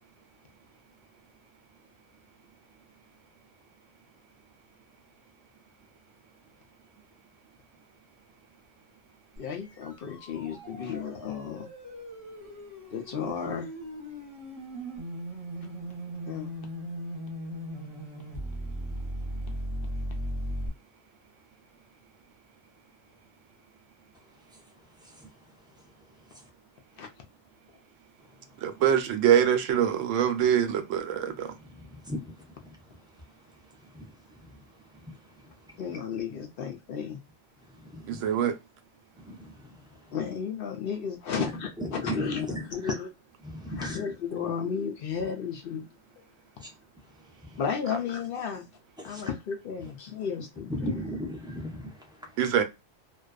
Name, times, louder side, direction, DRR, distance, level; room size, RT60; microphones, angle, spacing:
voice 1, 9.4-11.7 12.9-13.7 16.3-16.5 27.0-27.1 35.8-37.2 40.1-43.1 43.7-45.9 46.2-46.3 47.6-48.6 49.0-50.9, left 7 dB, 60° left, 0.6 m, -33 dB
sound 1, 9.4-20.7, right 1 dB, 30° right, 0.9 m, -38 dB
voice 2, 28.6-31.5 38.1-38.5 52.4-52.6, right 9 dB, 85° right, 0.9 m, -24 dB
voice 3, 31.6-32.3 32.6-32.8 33.9-34.1 34.4-34.6 35.0-35.1 37.8-38.2 39.2-39.8 41.4-41.5 41.8-42.9 43.4-44.0 46.6-46.7 47.5-47.6 49.0-49.3 50.7-52.4, equal, 5° right, 0.5 m, -37 dB
2.5 x 2.2 x 2.2 m
omnidirectional pair, 1.3 m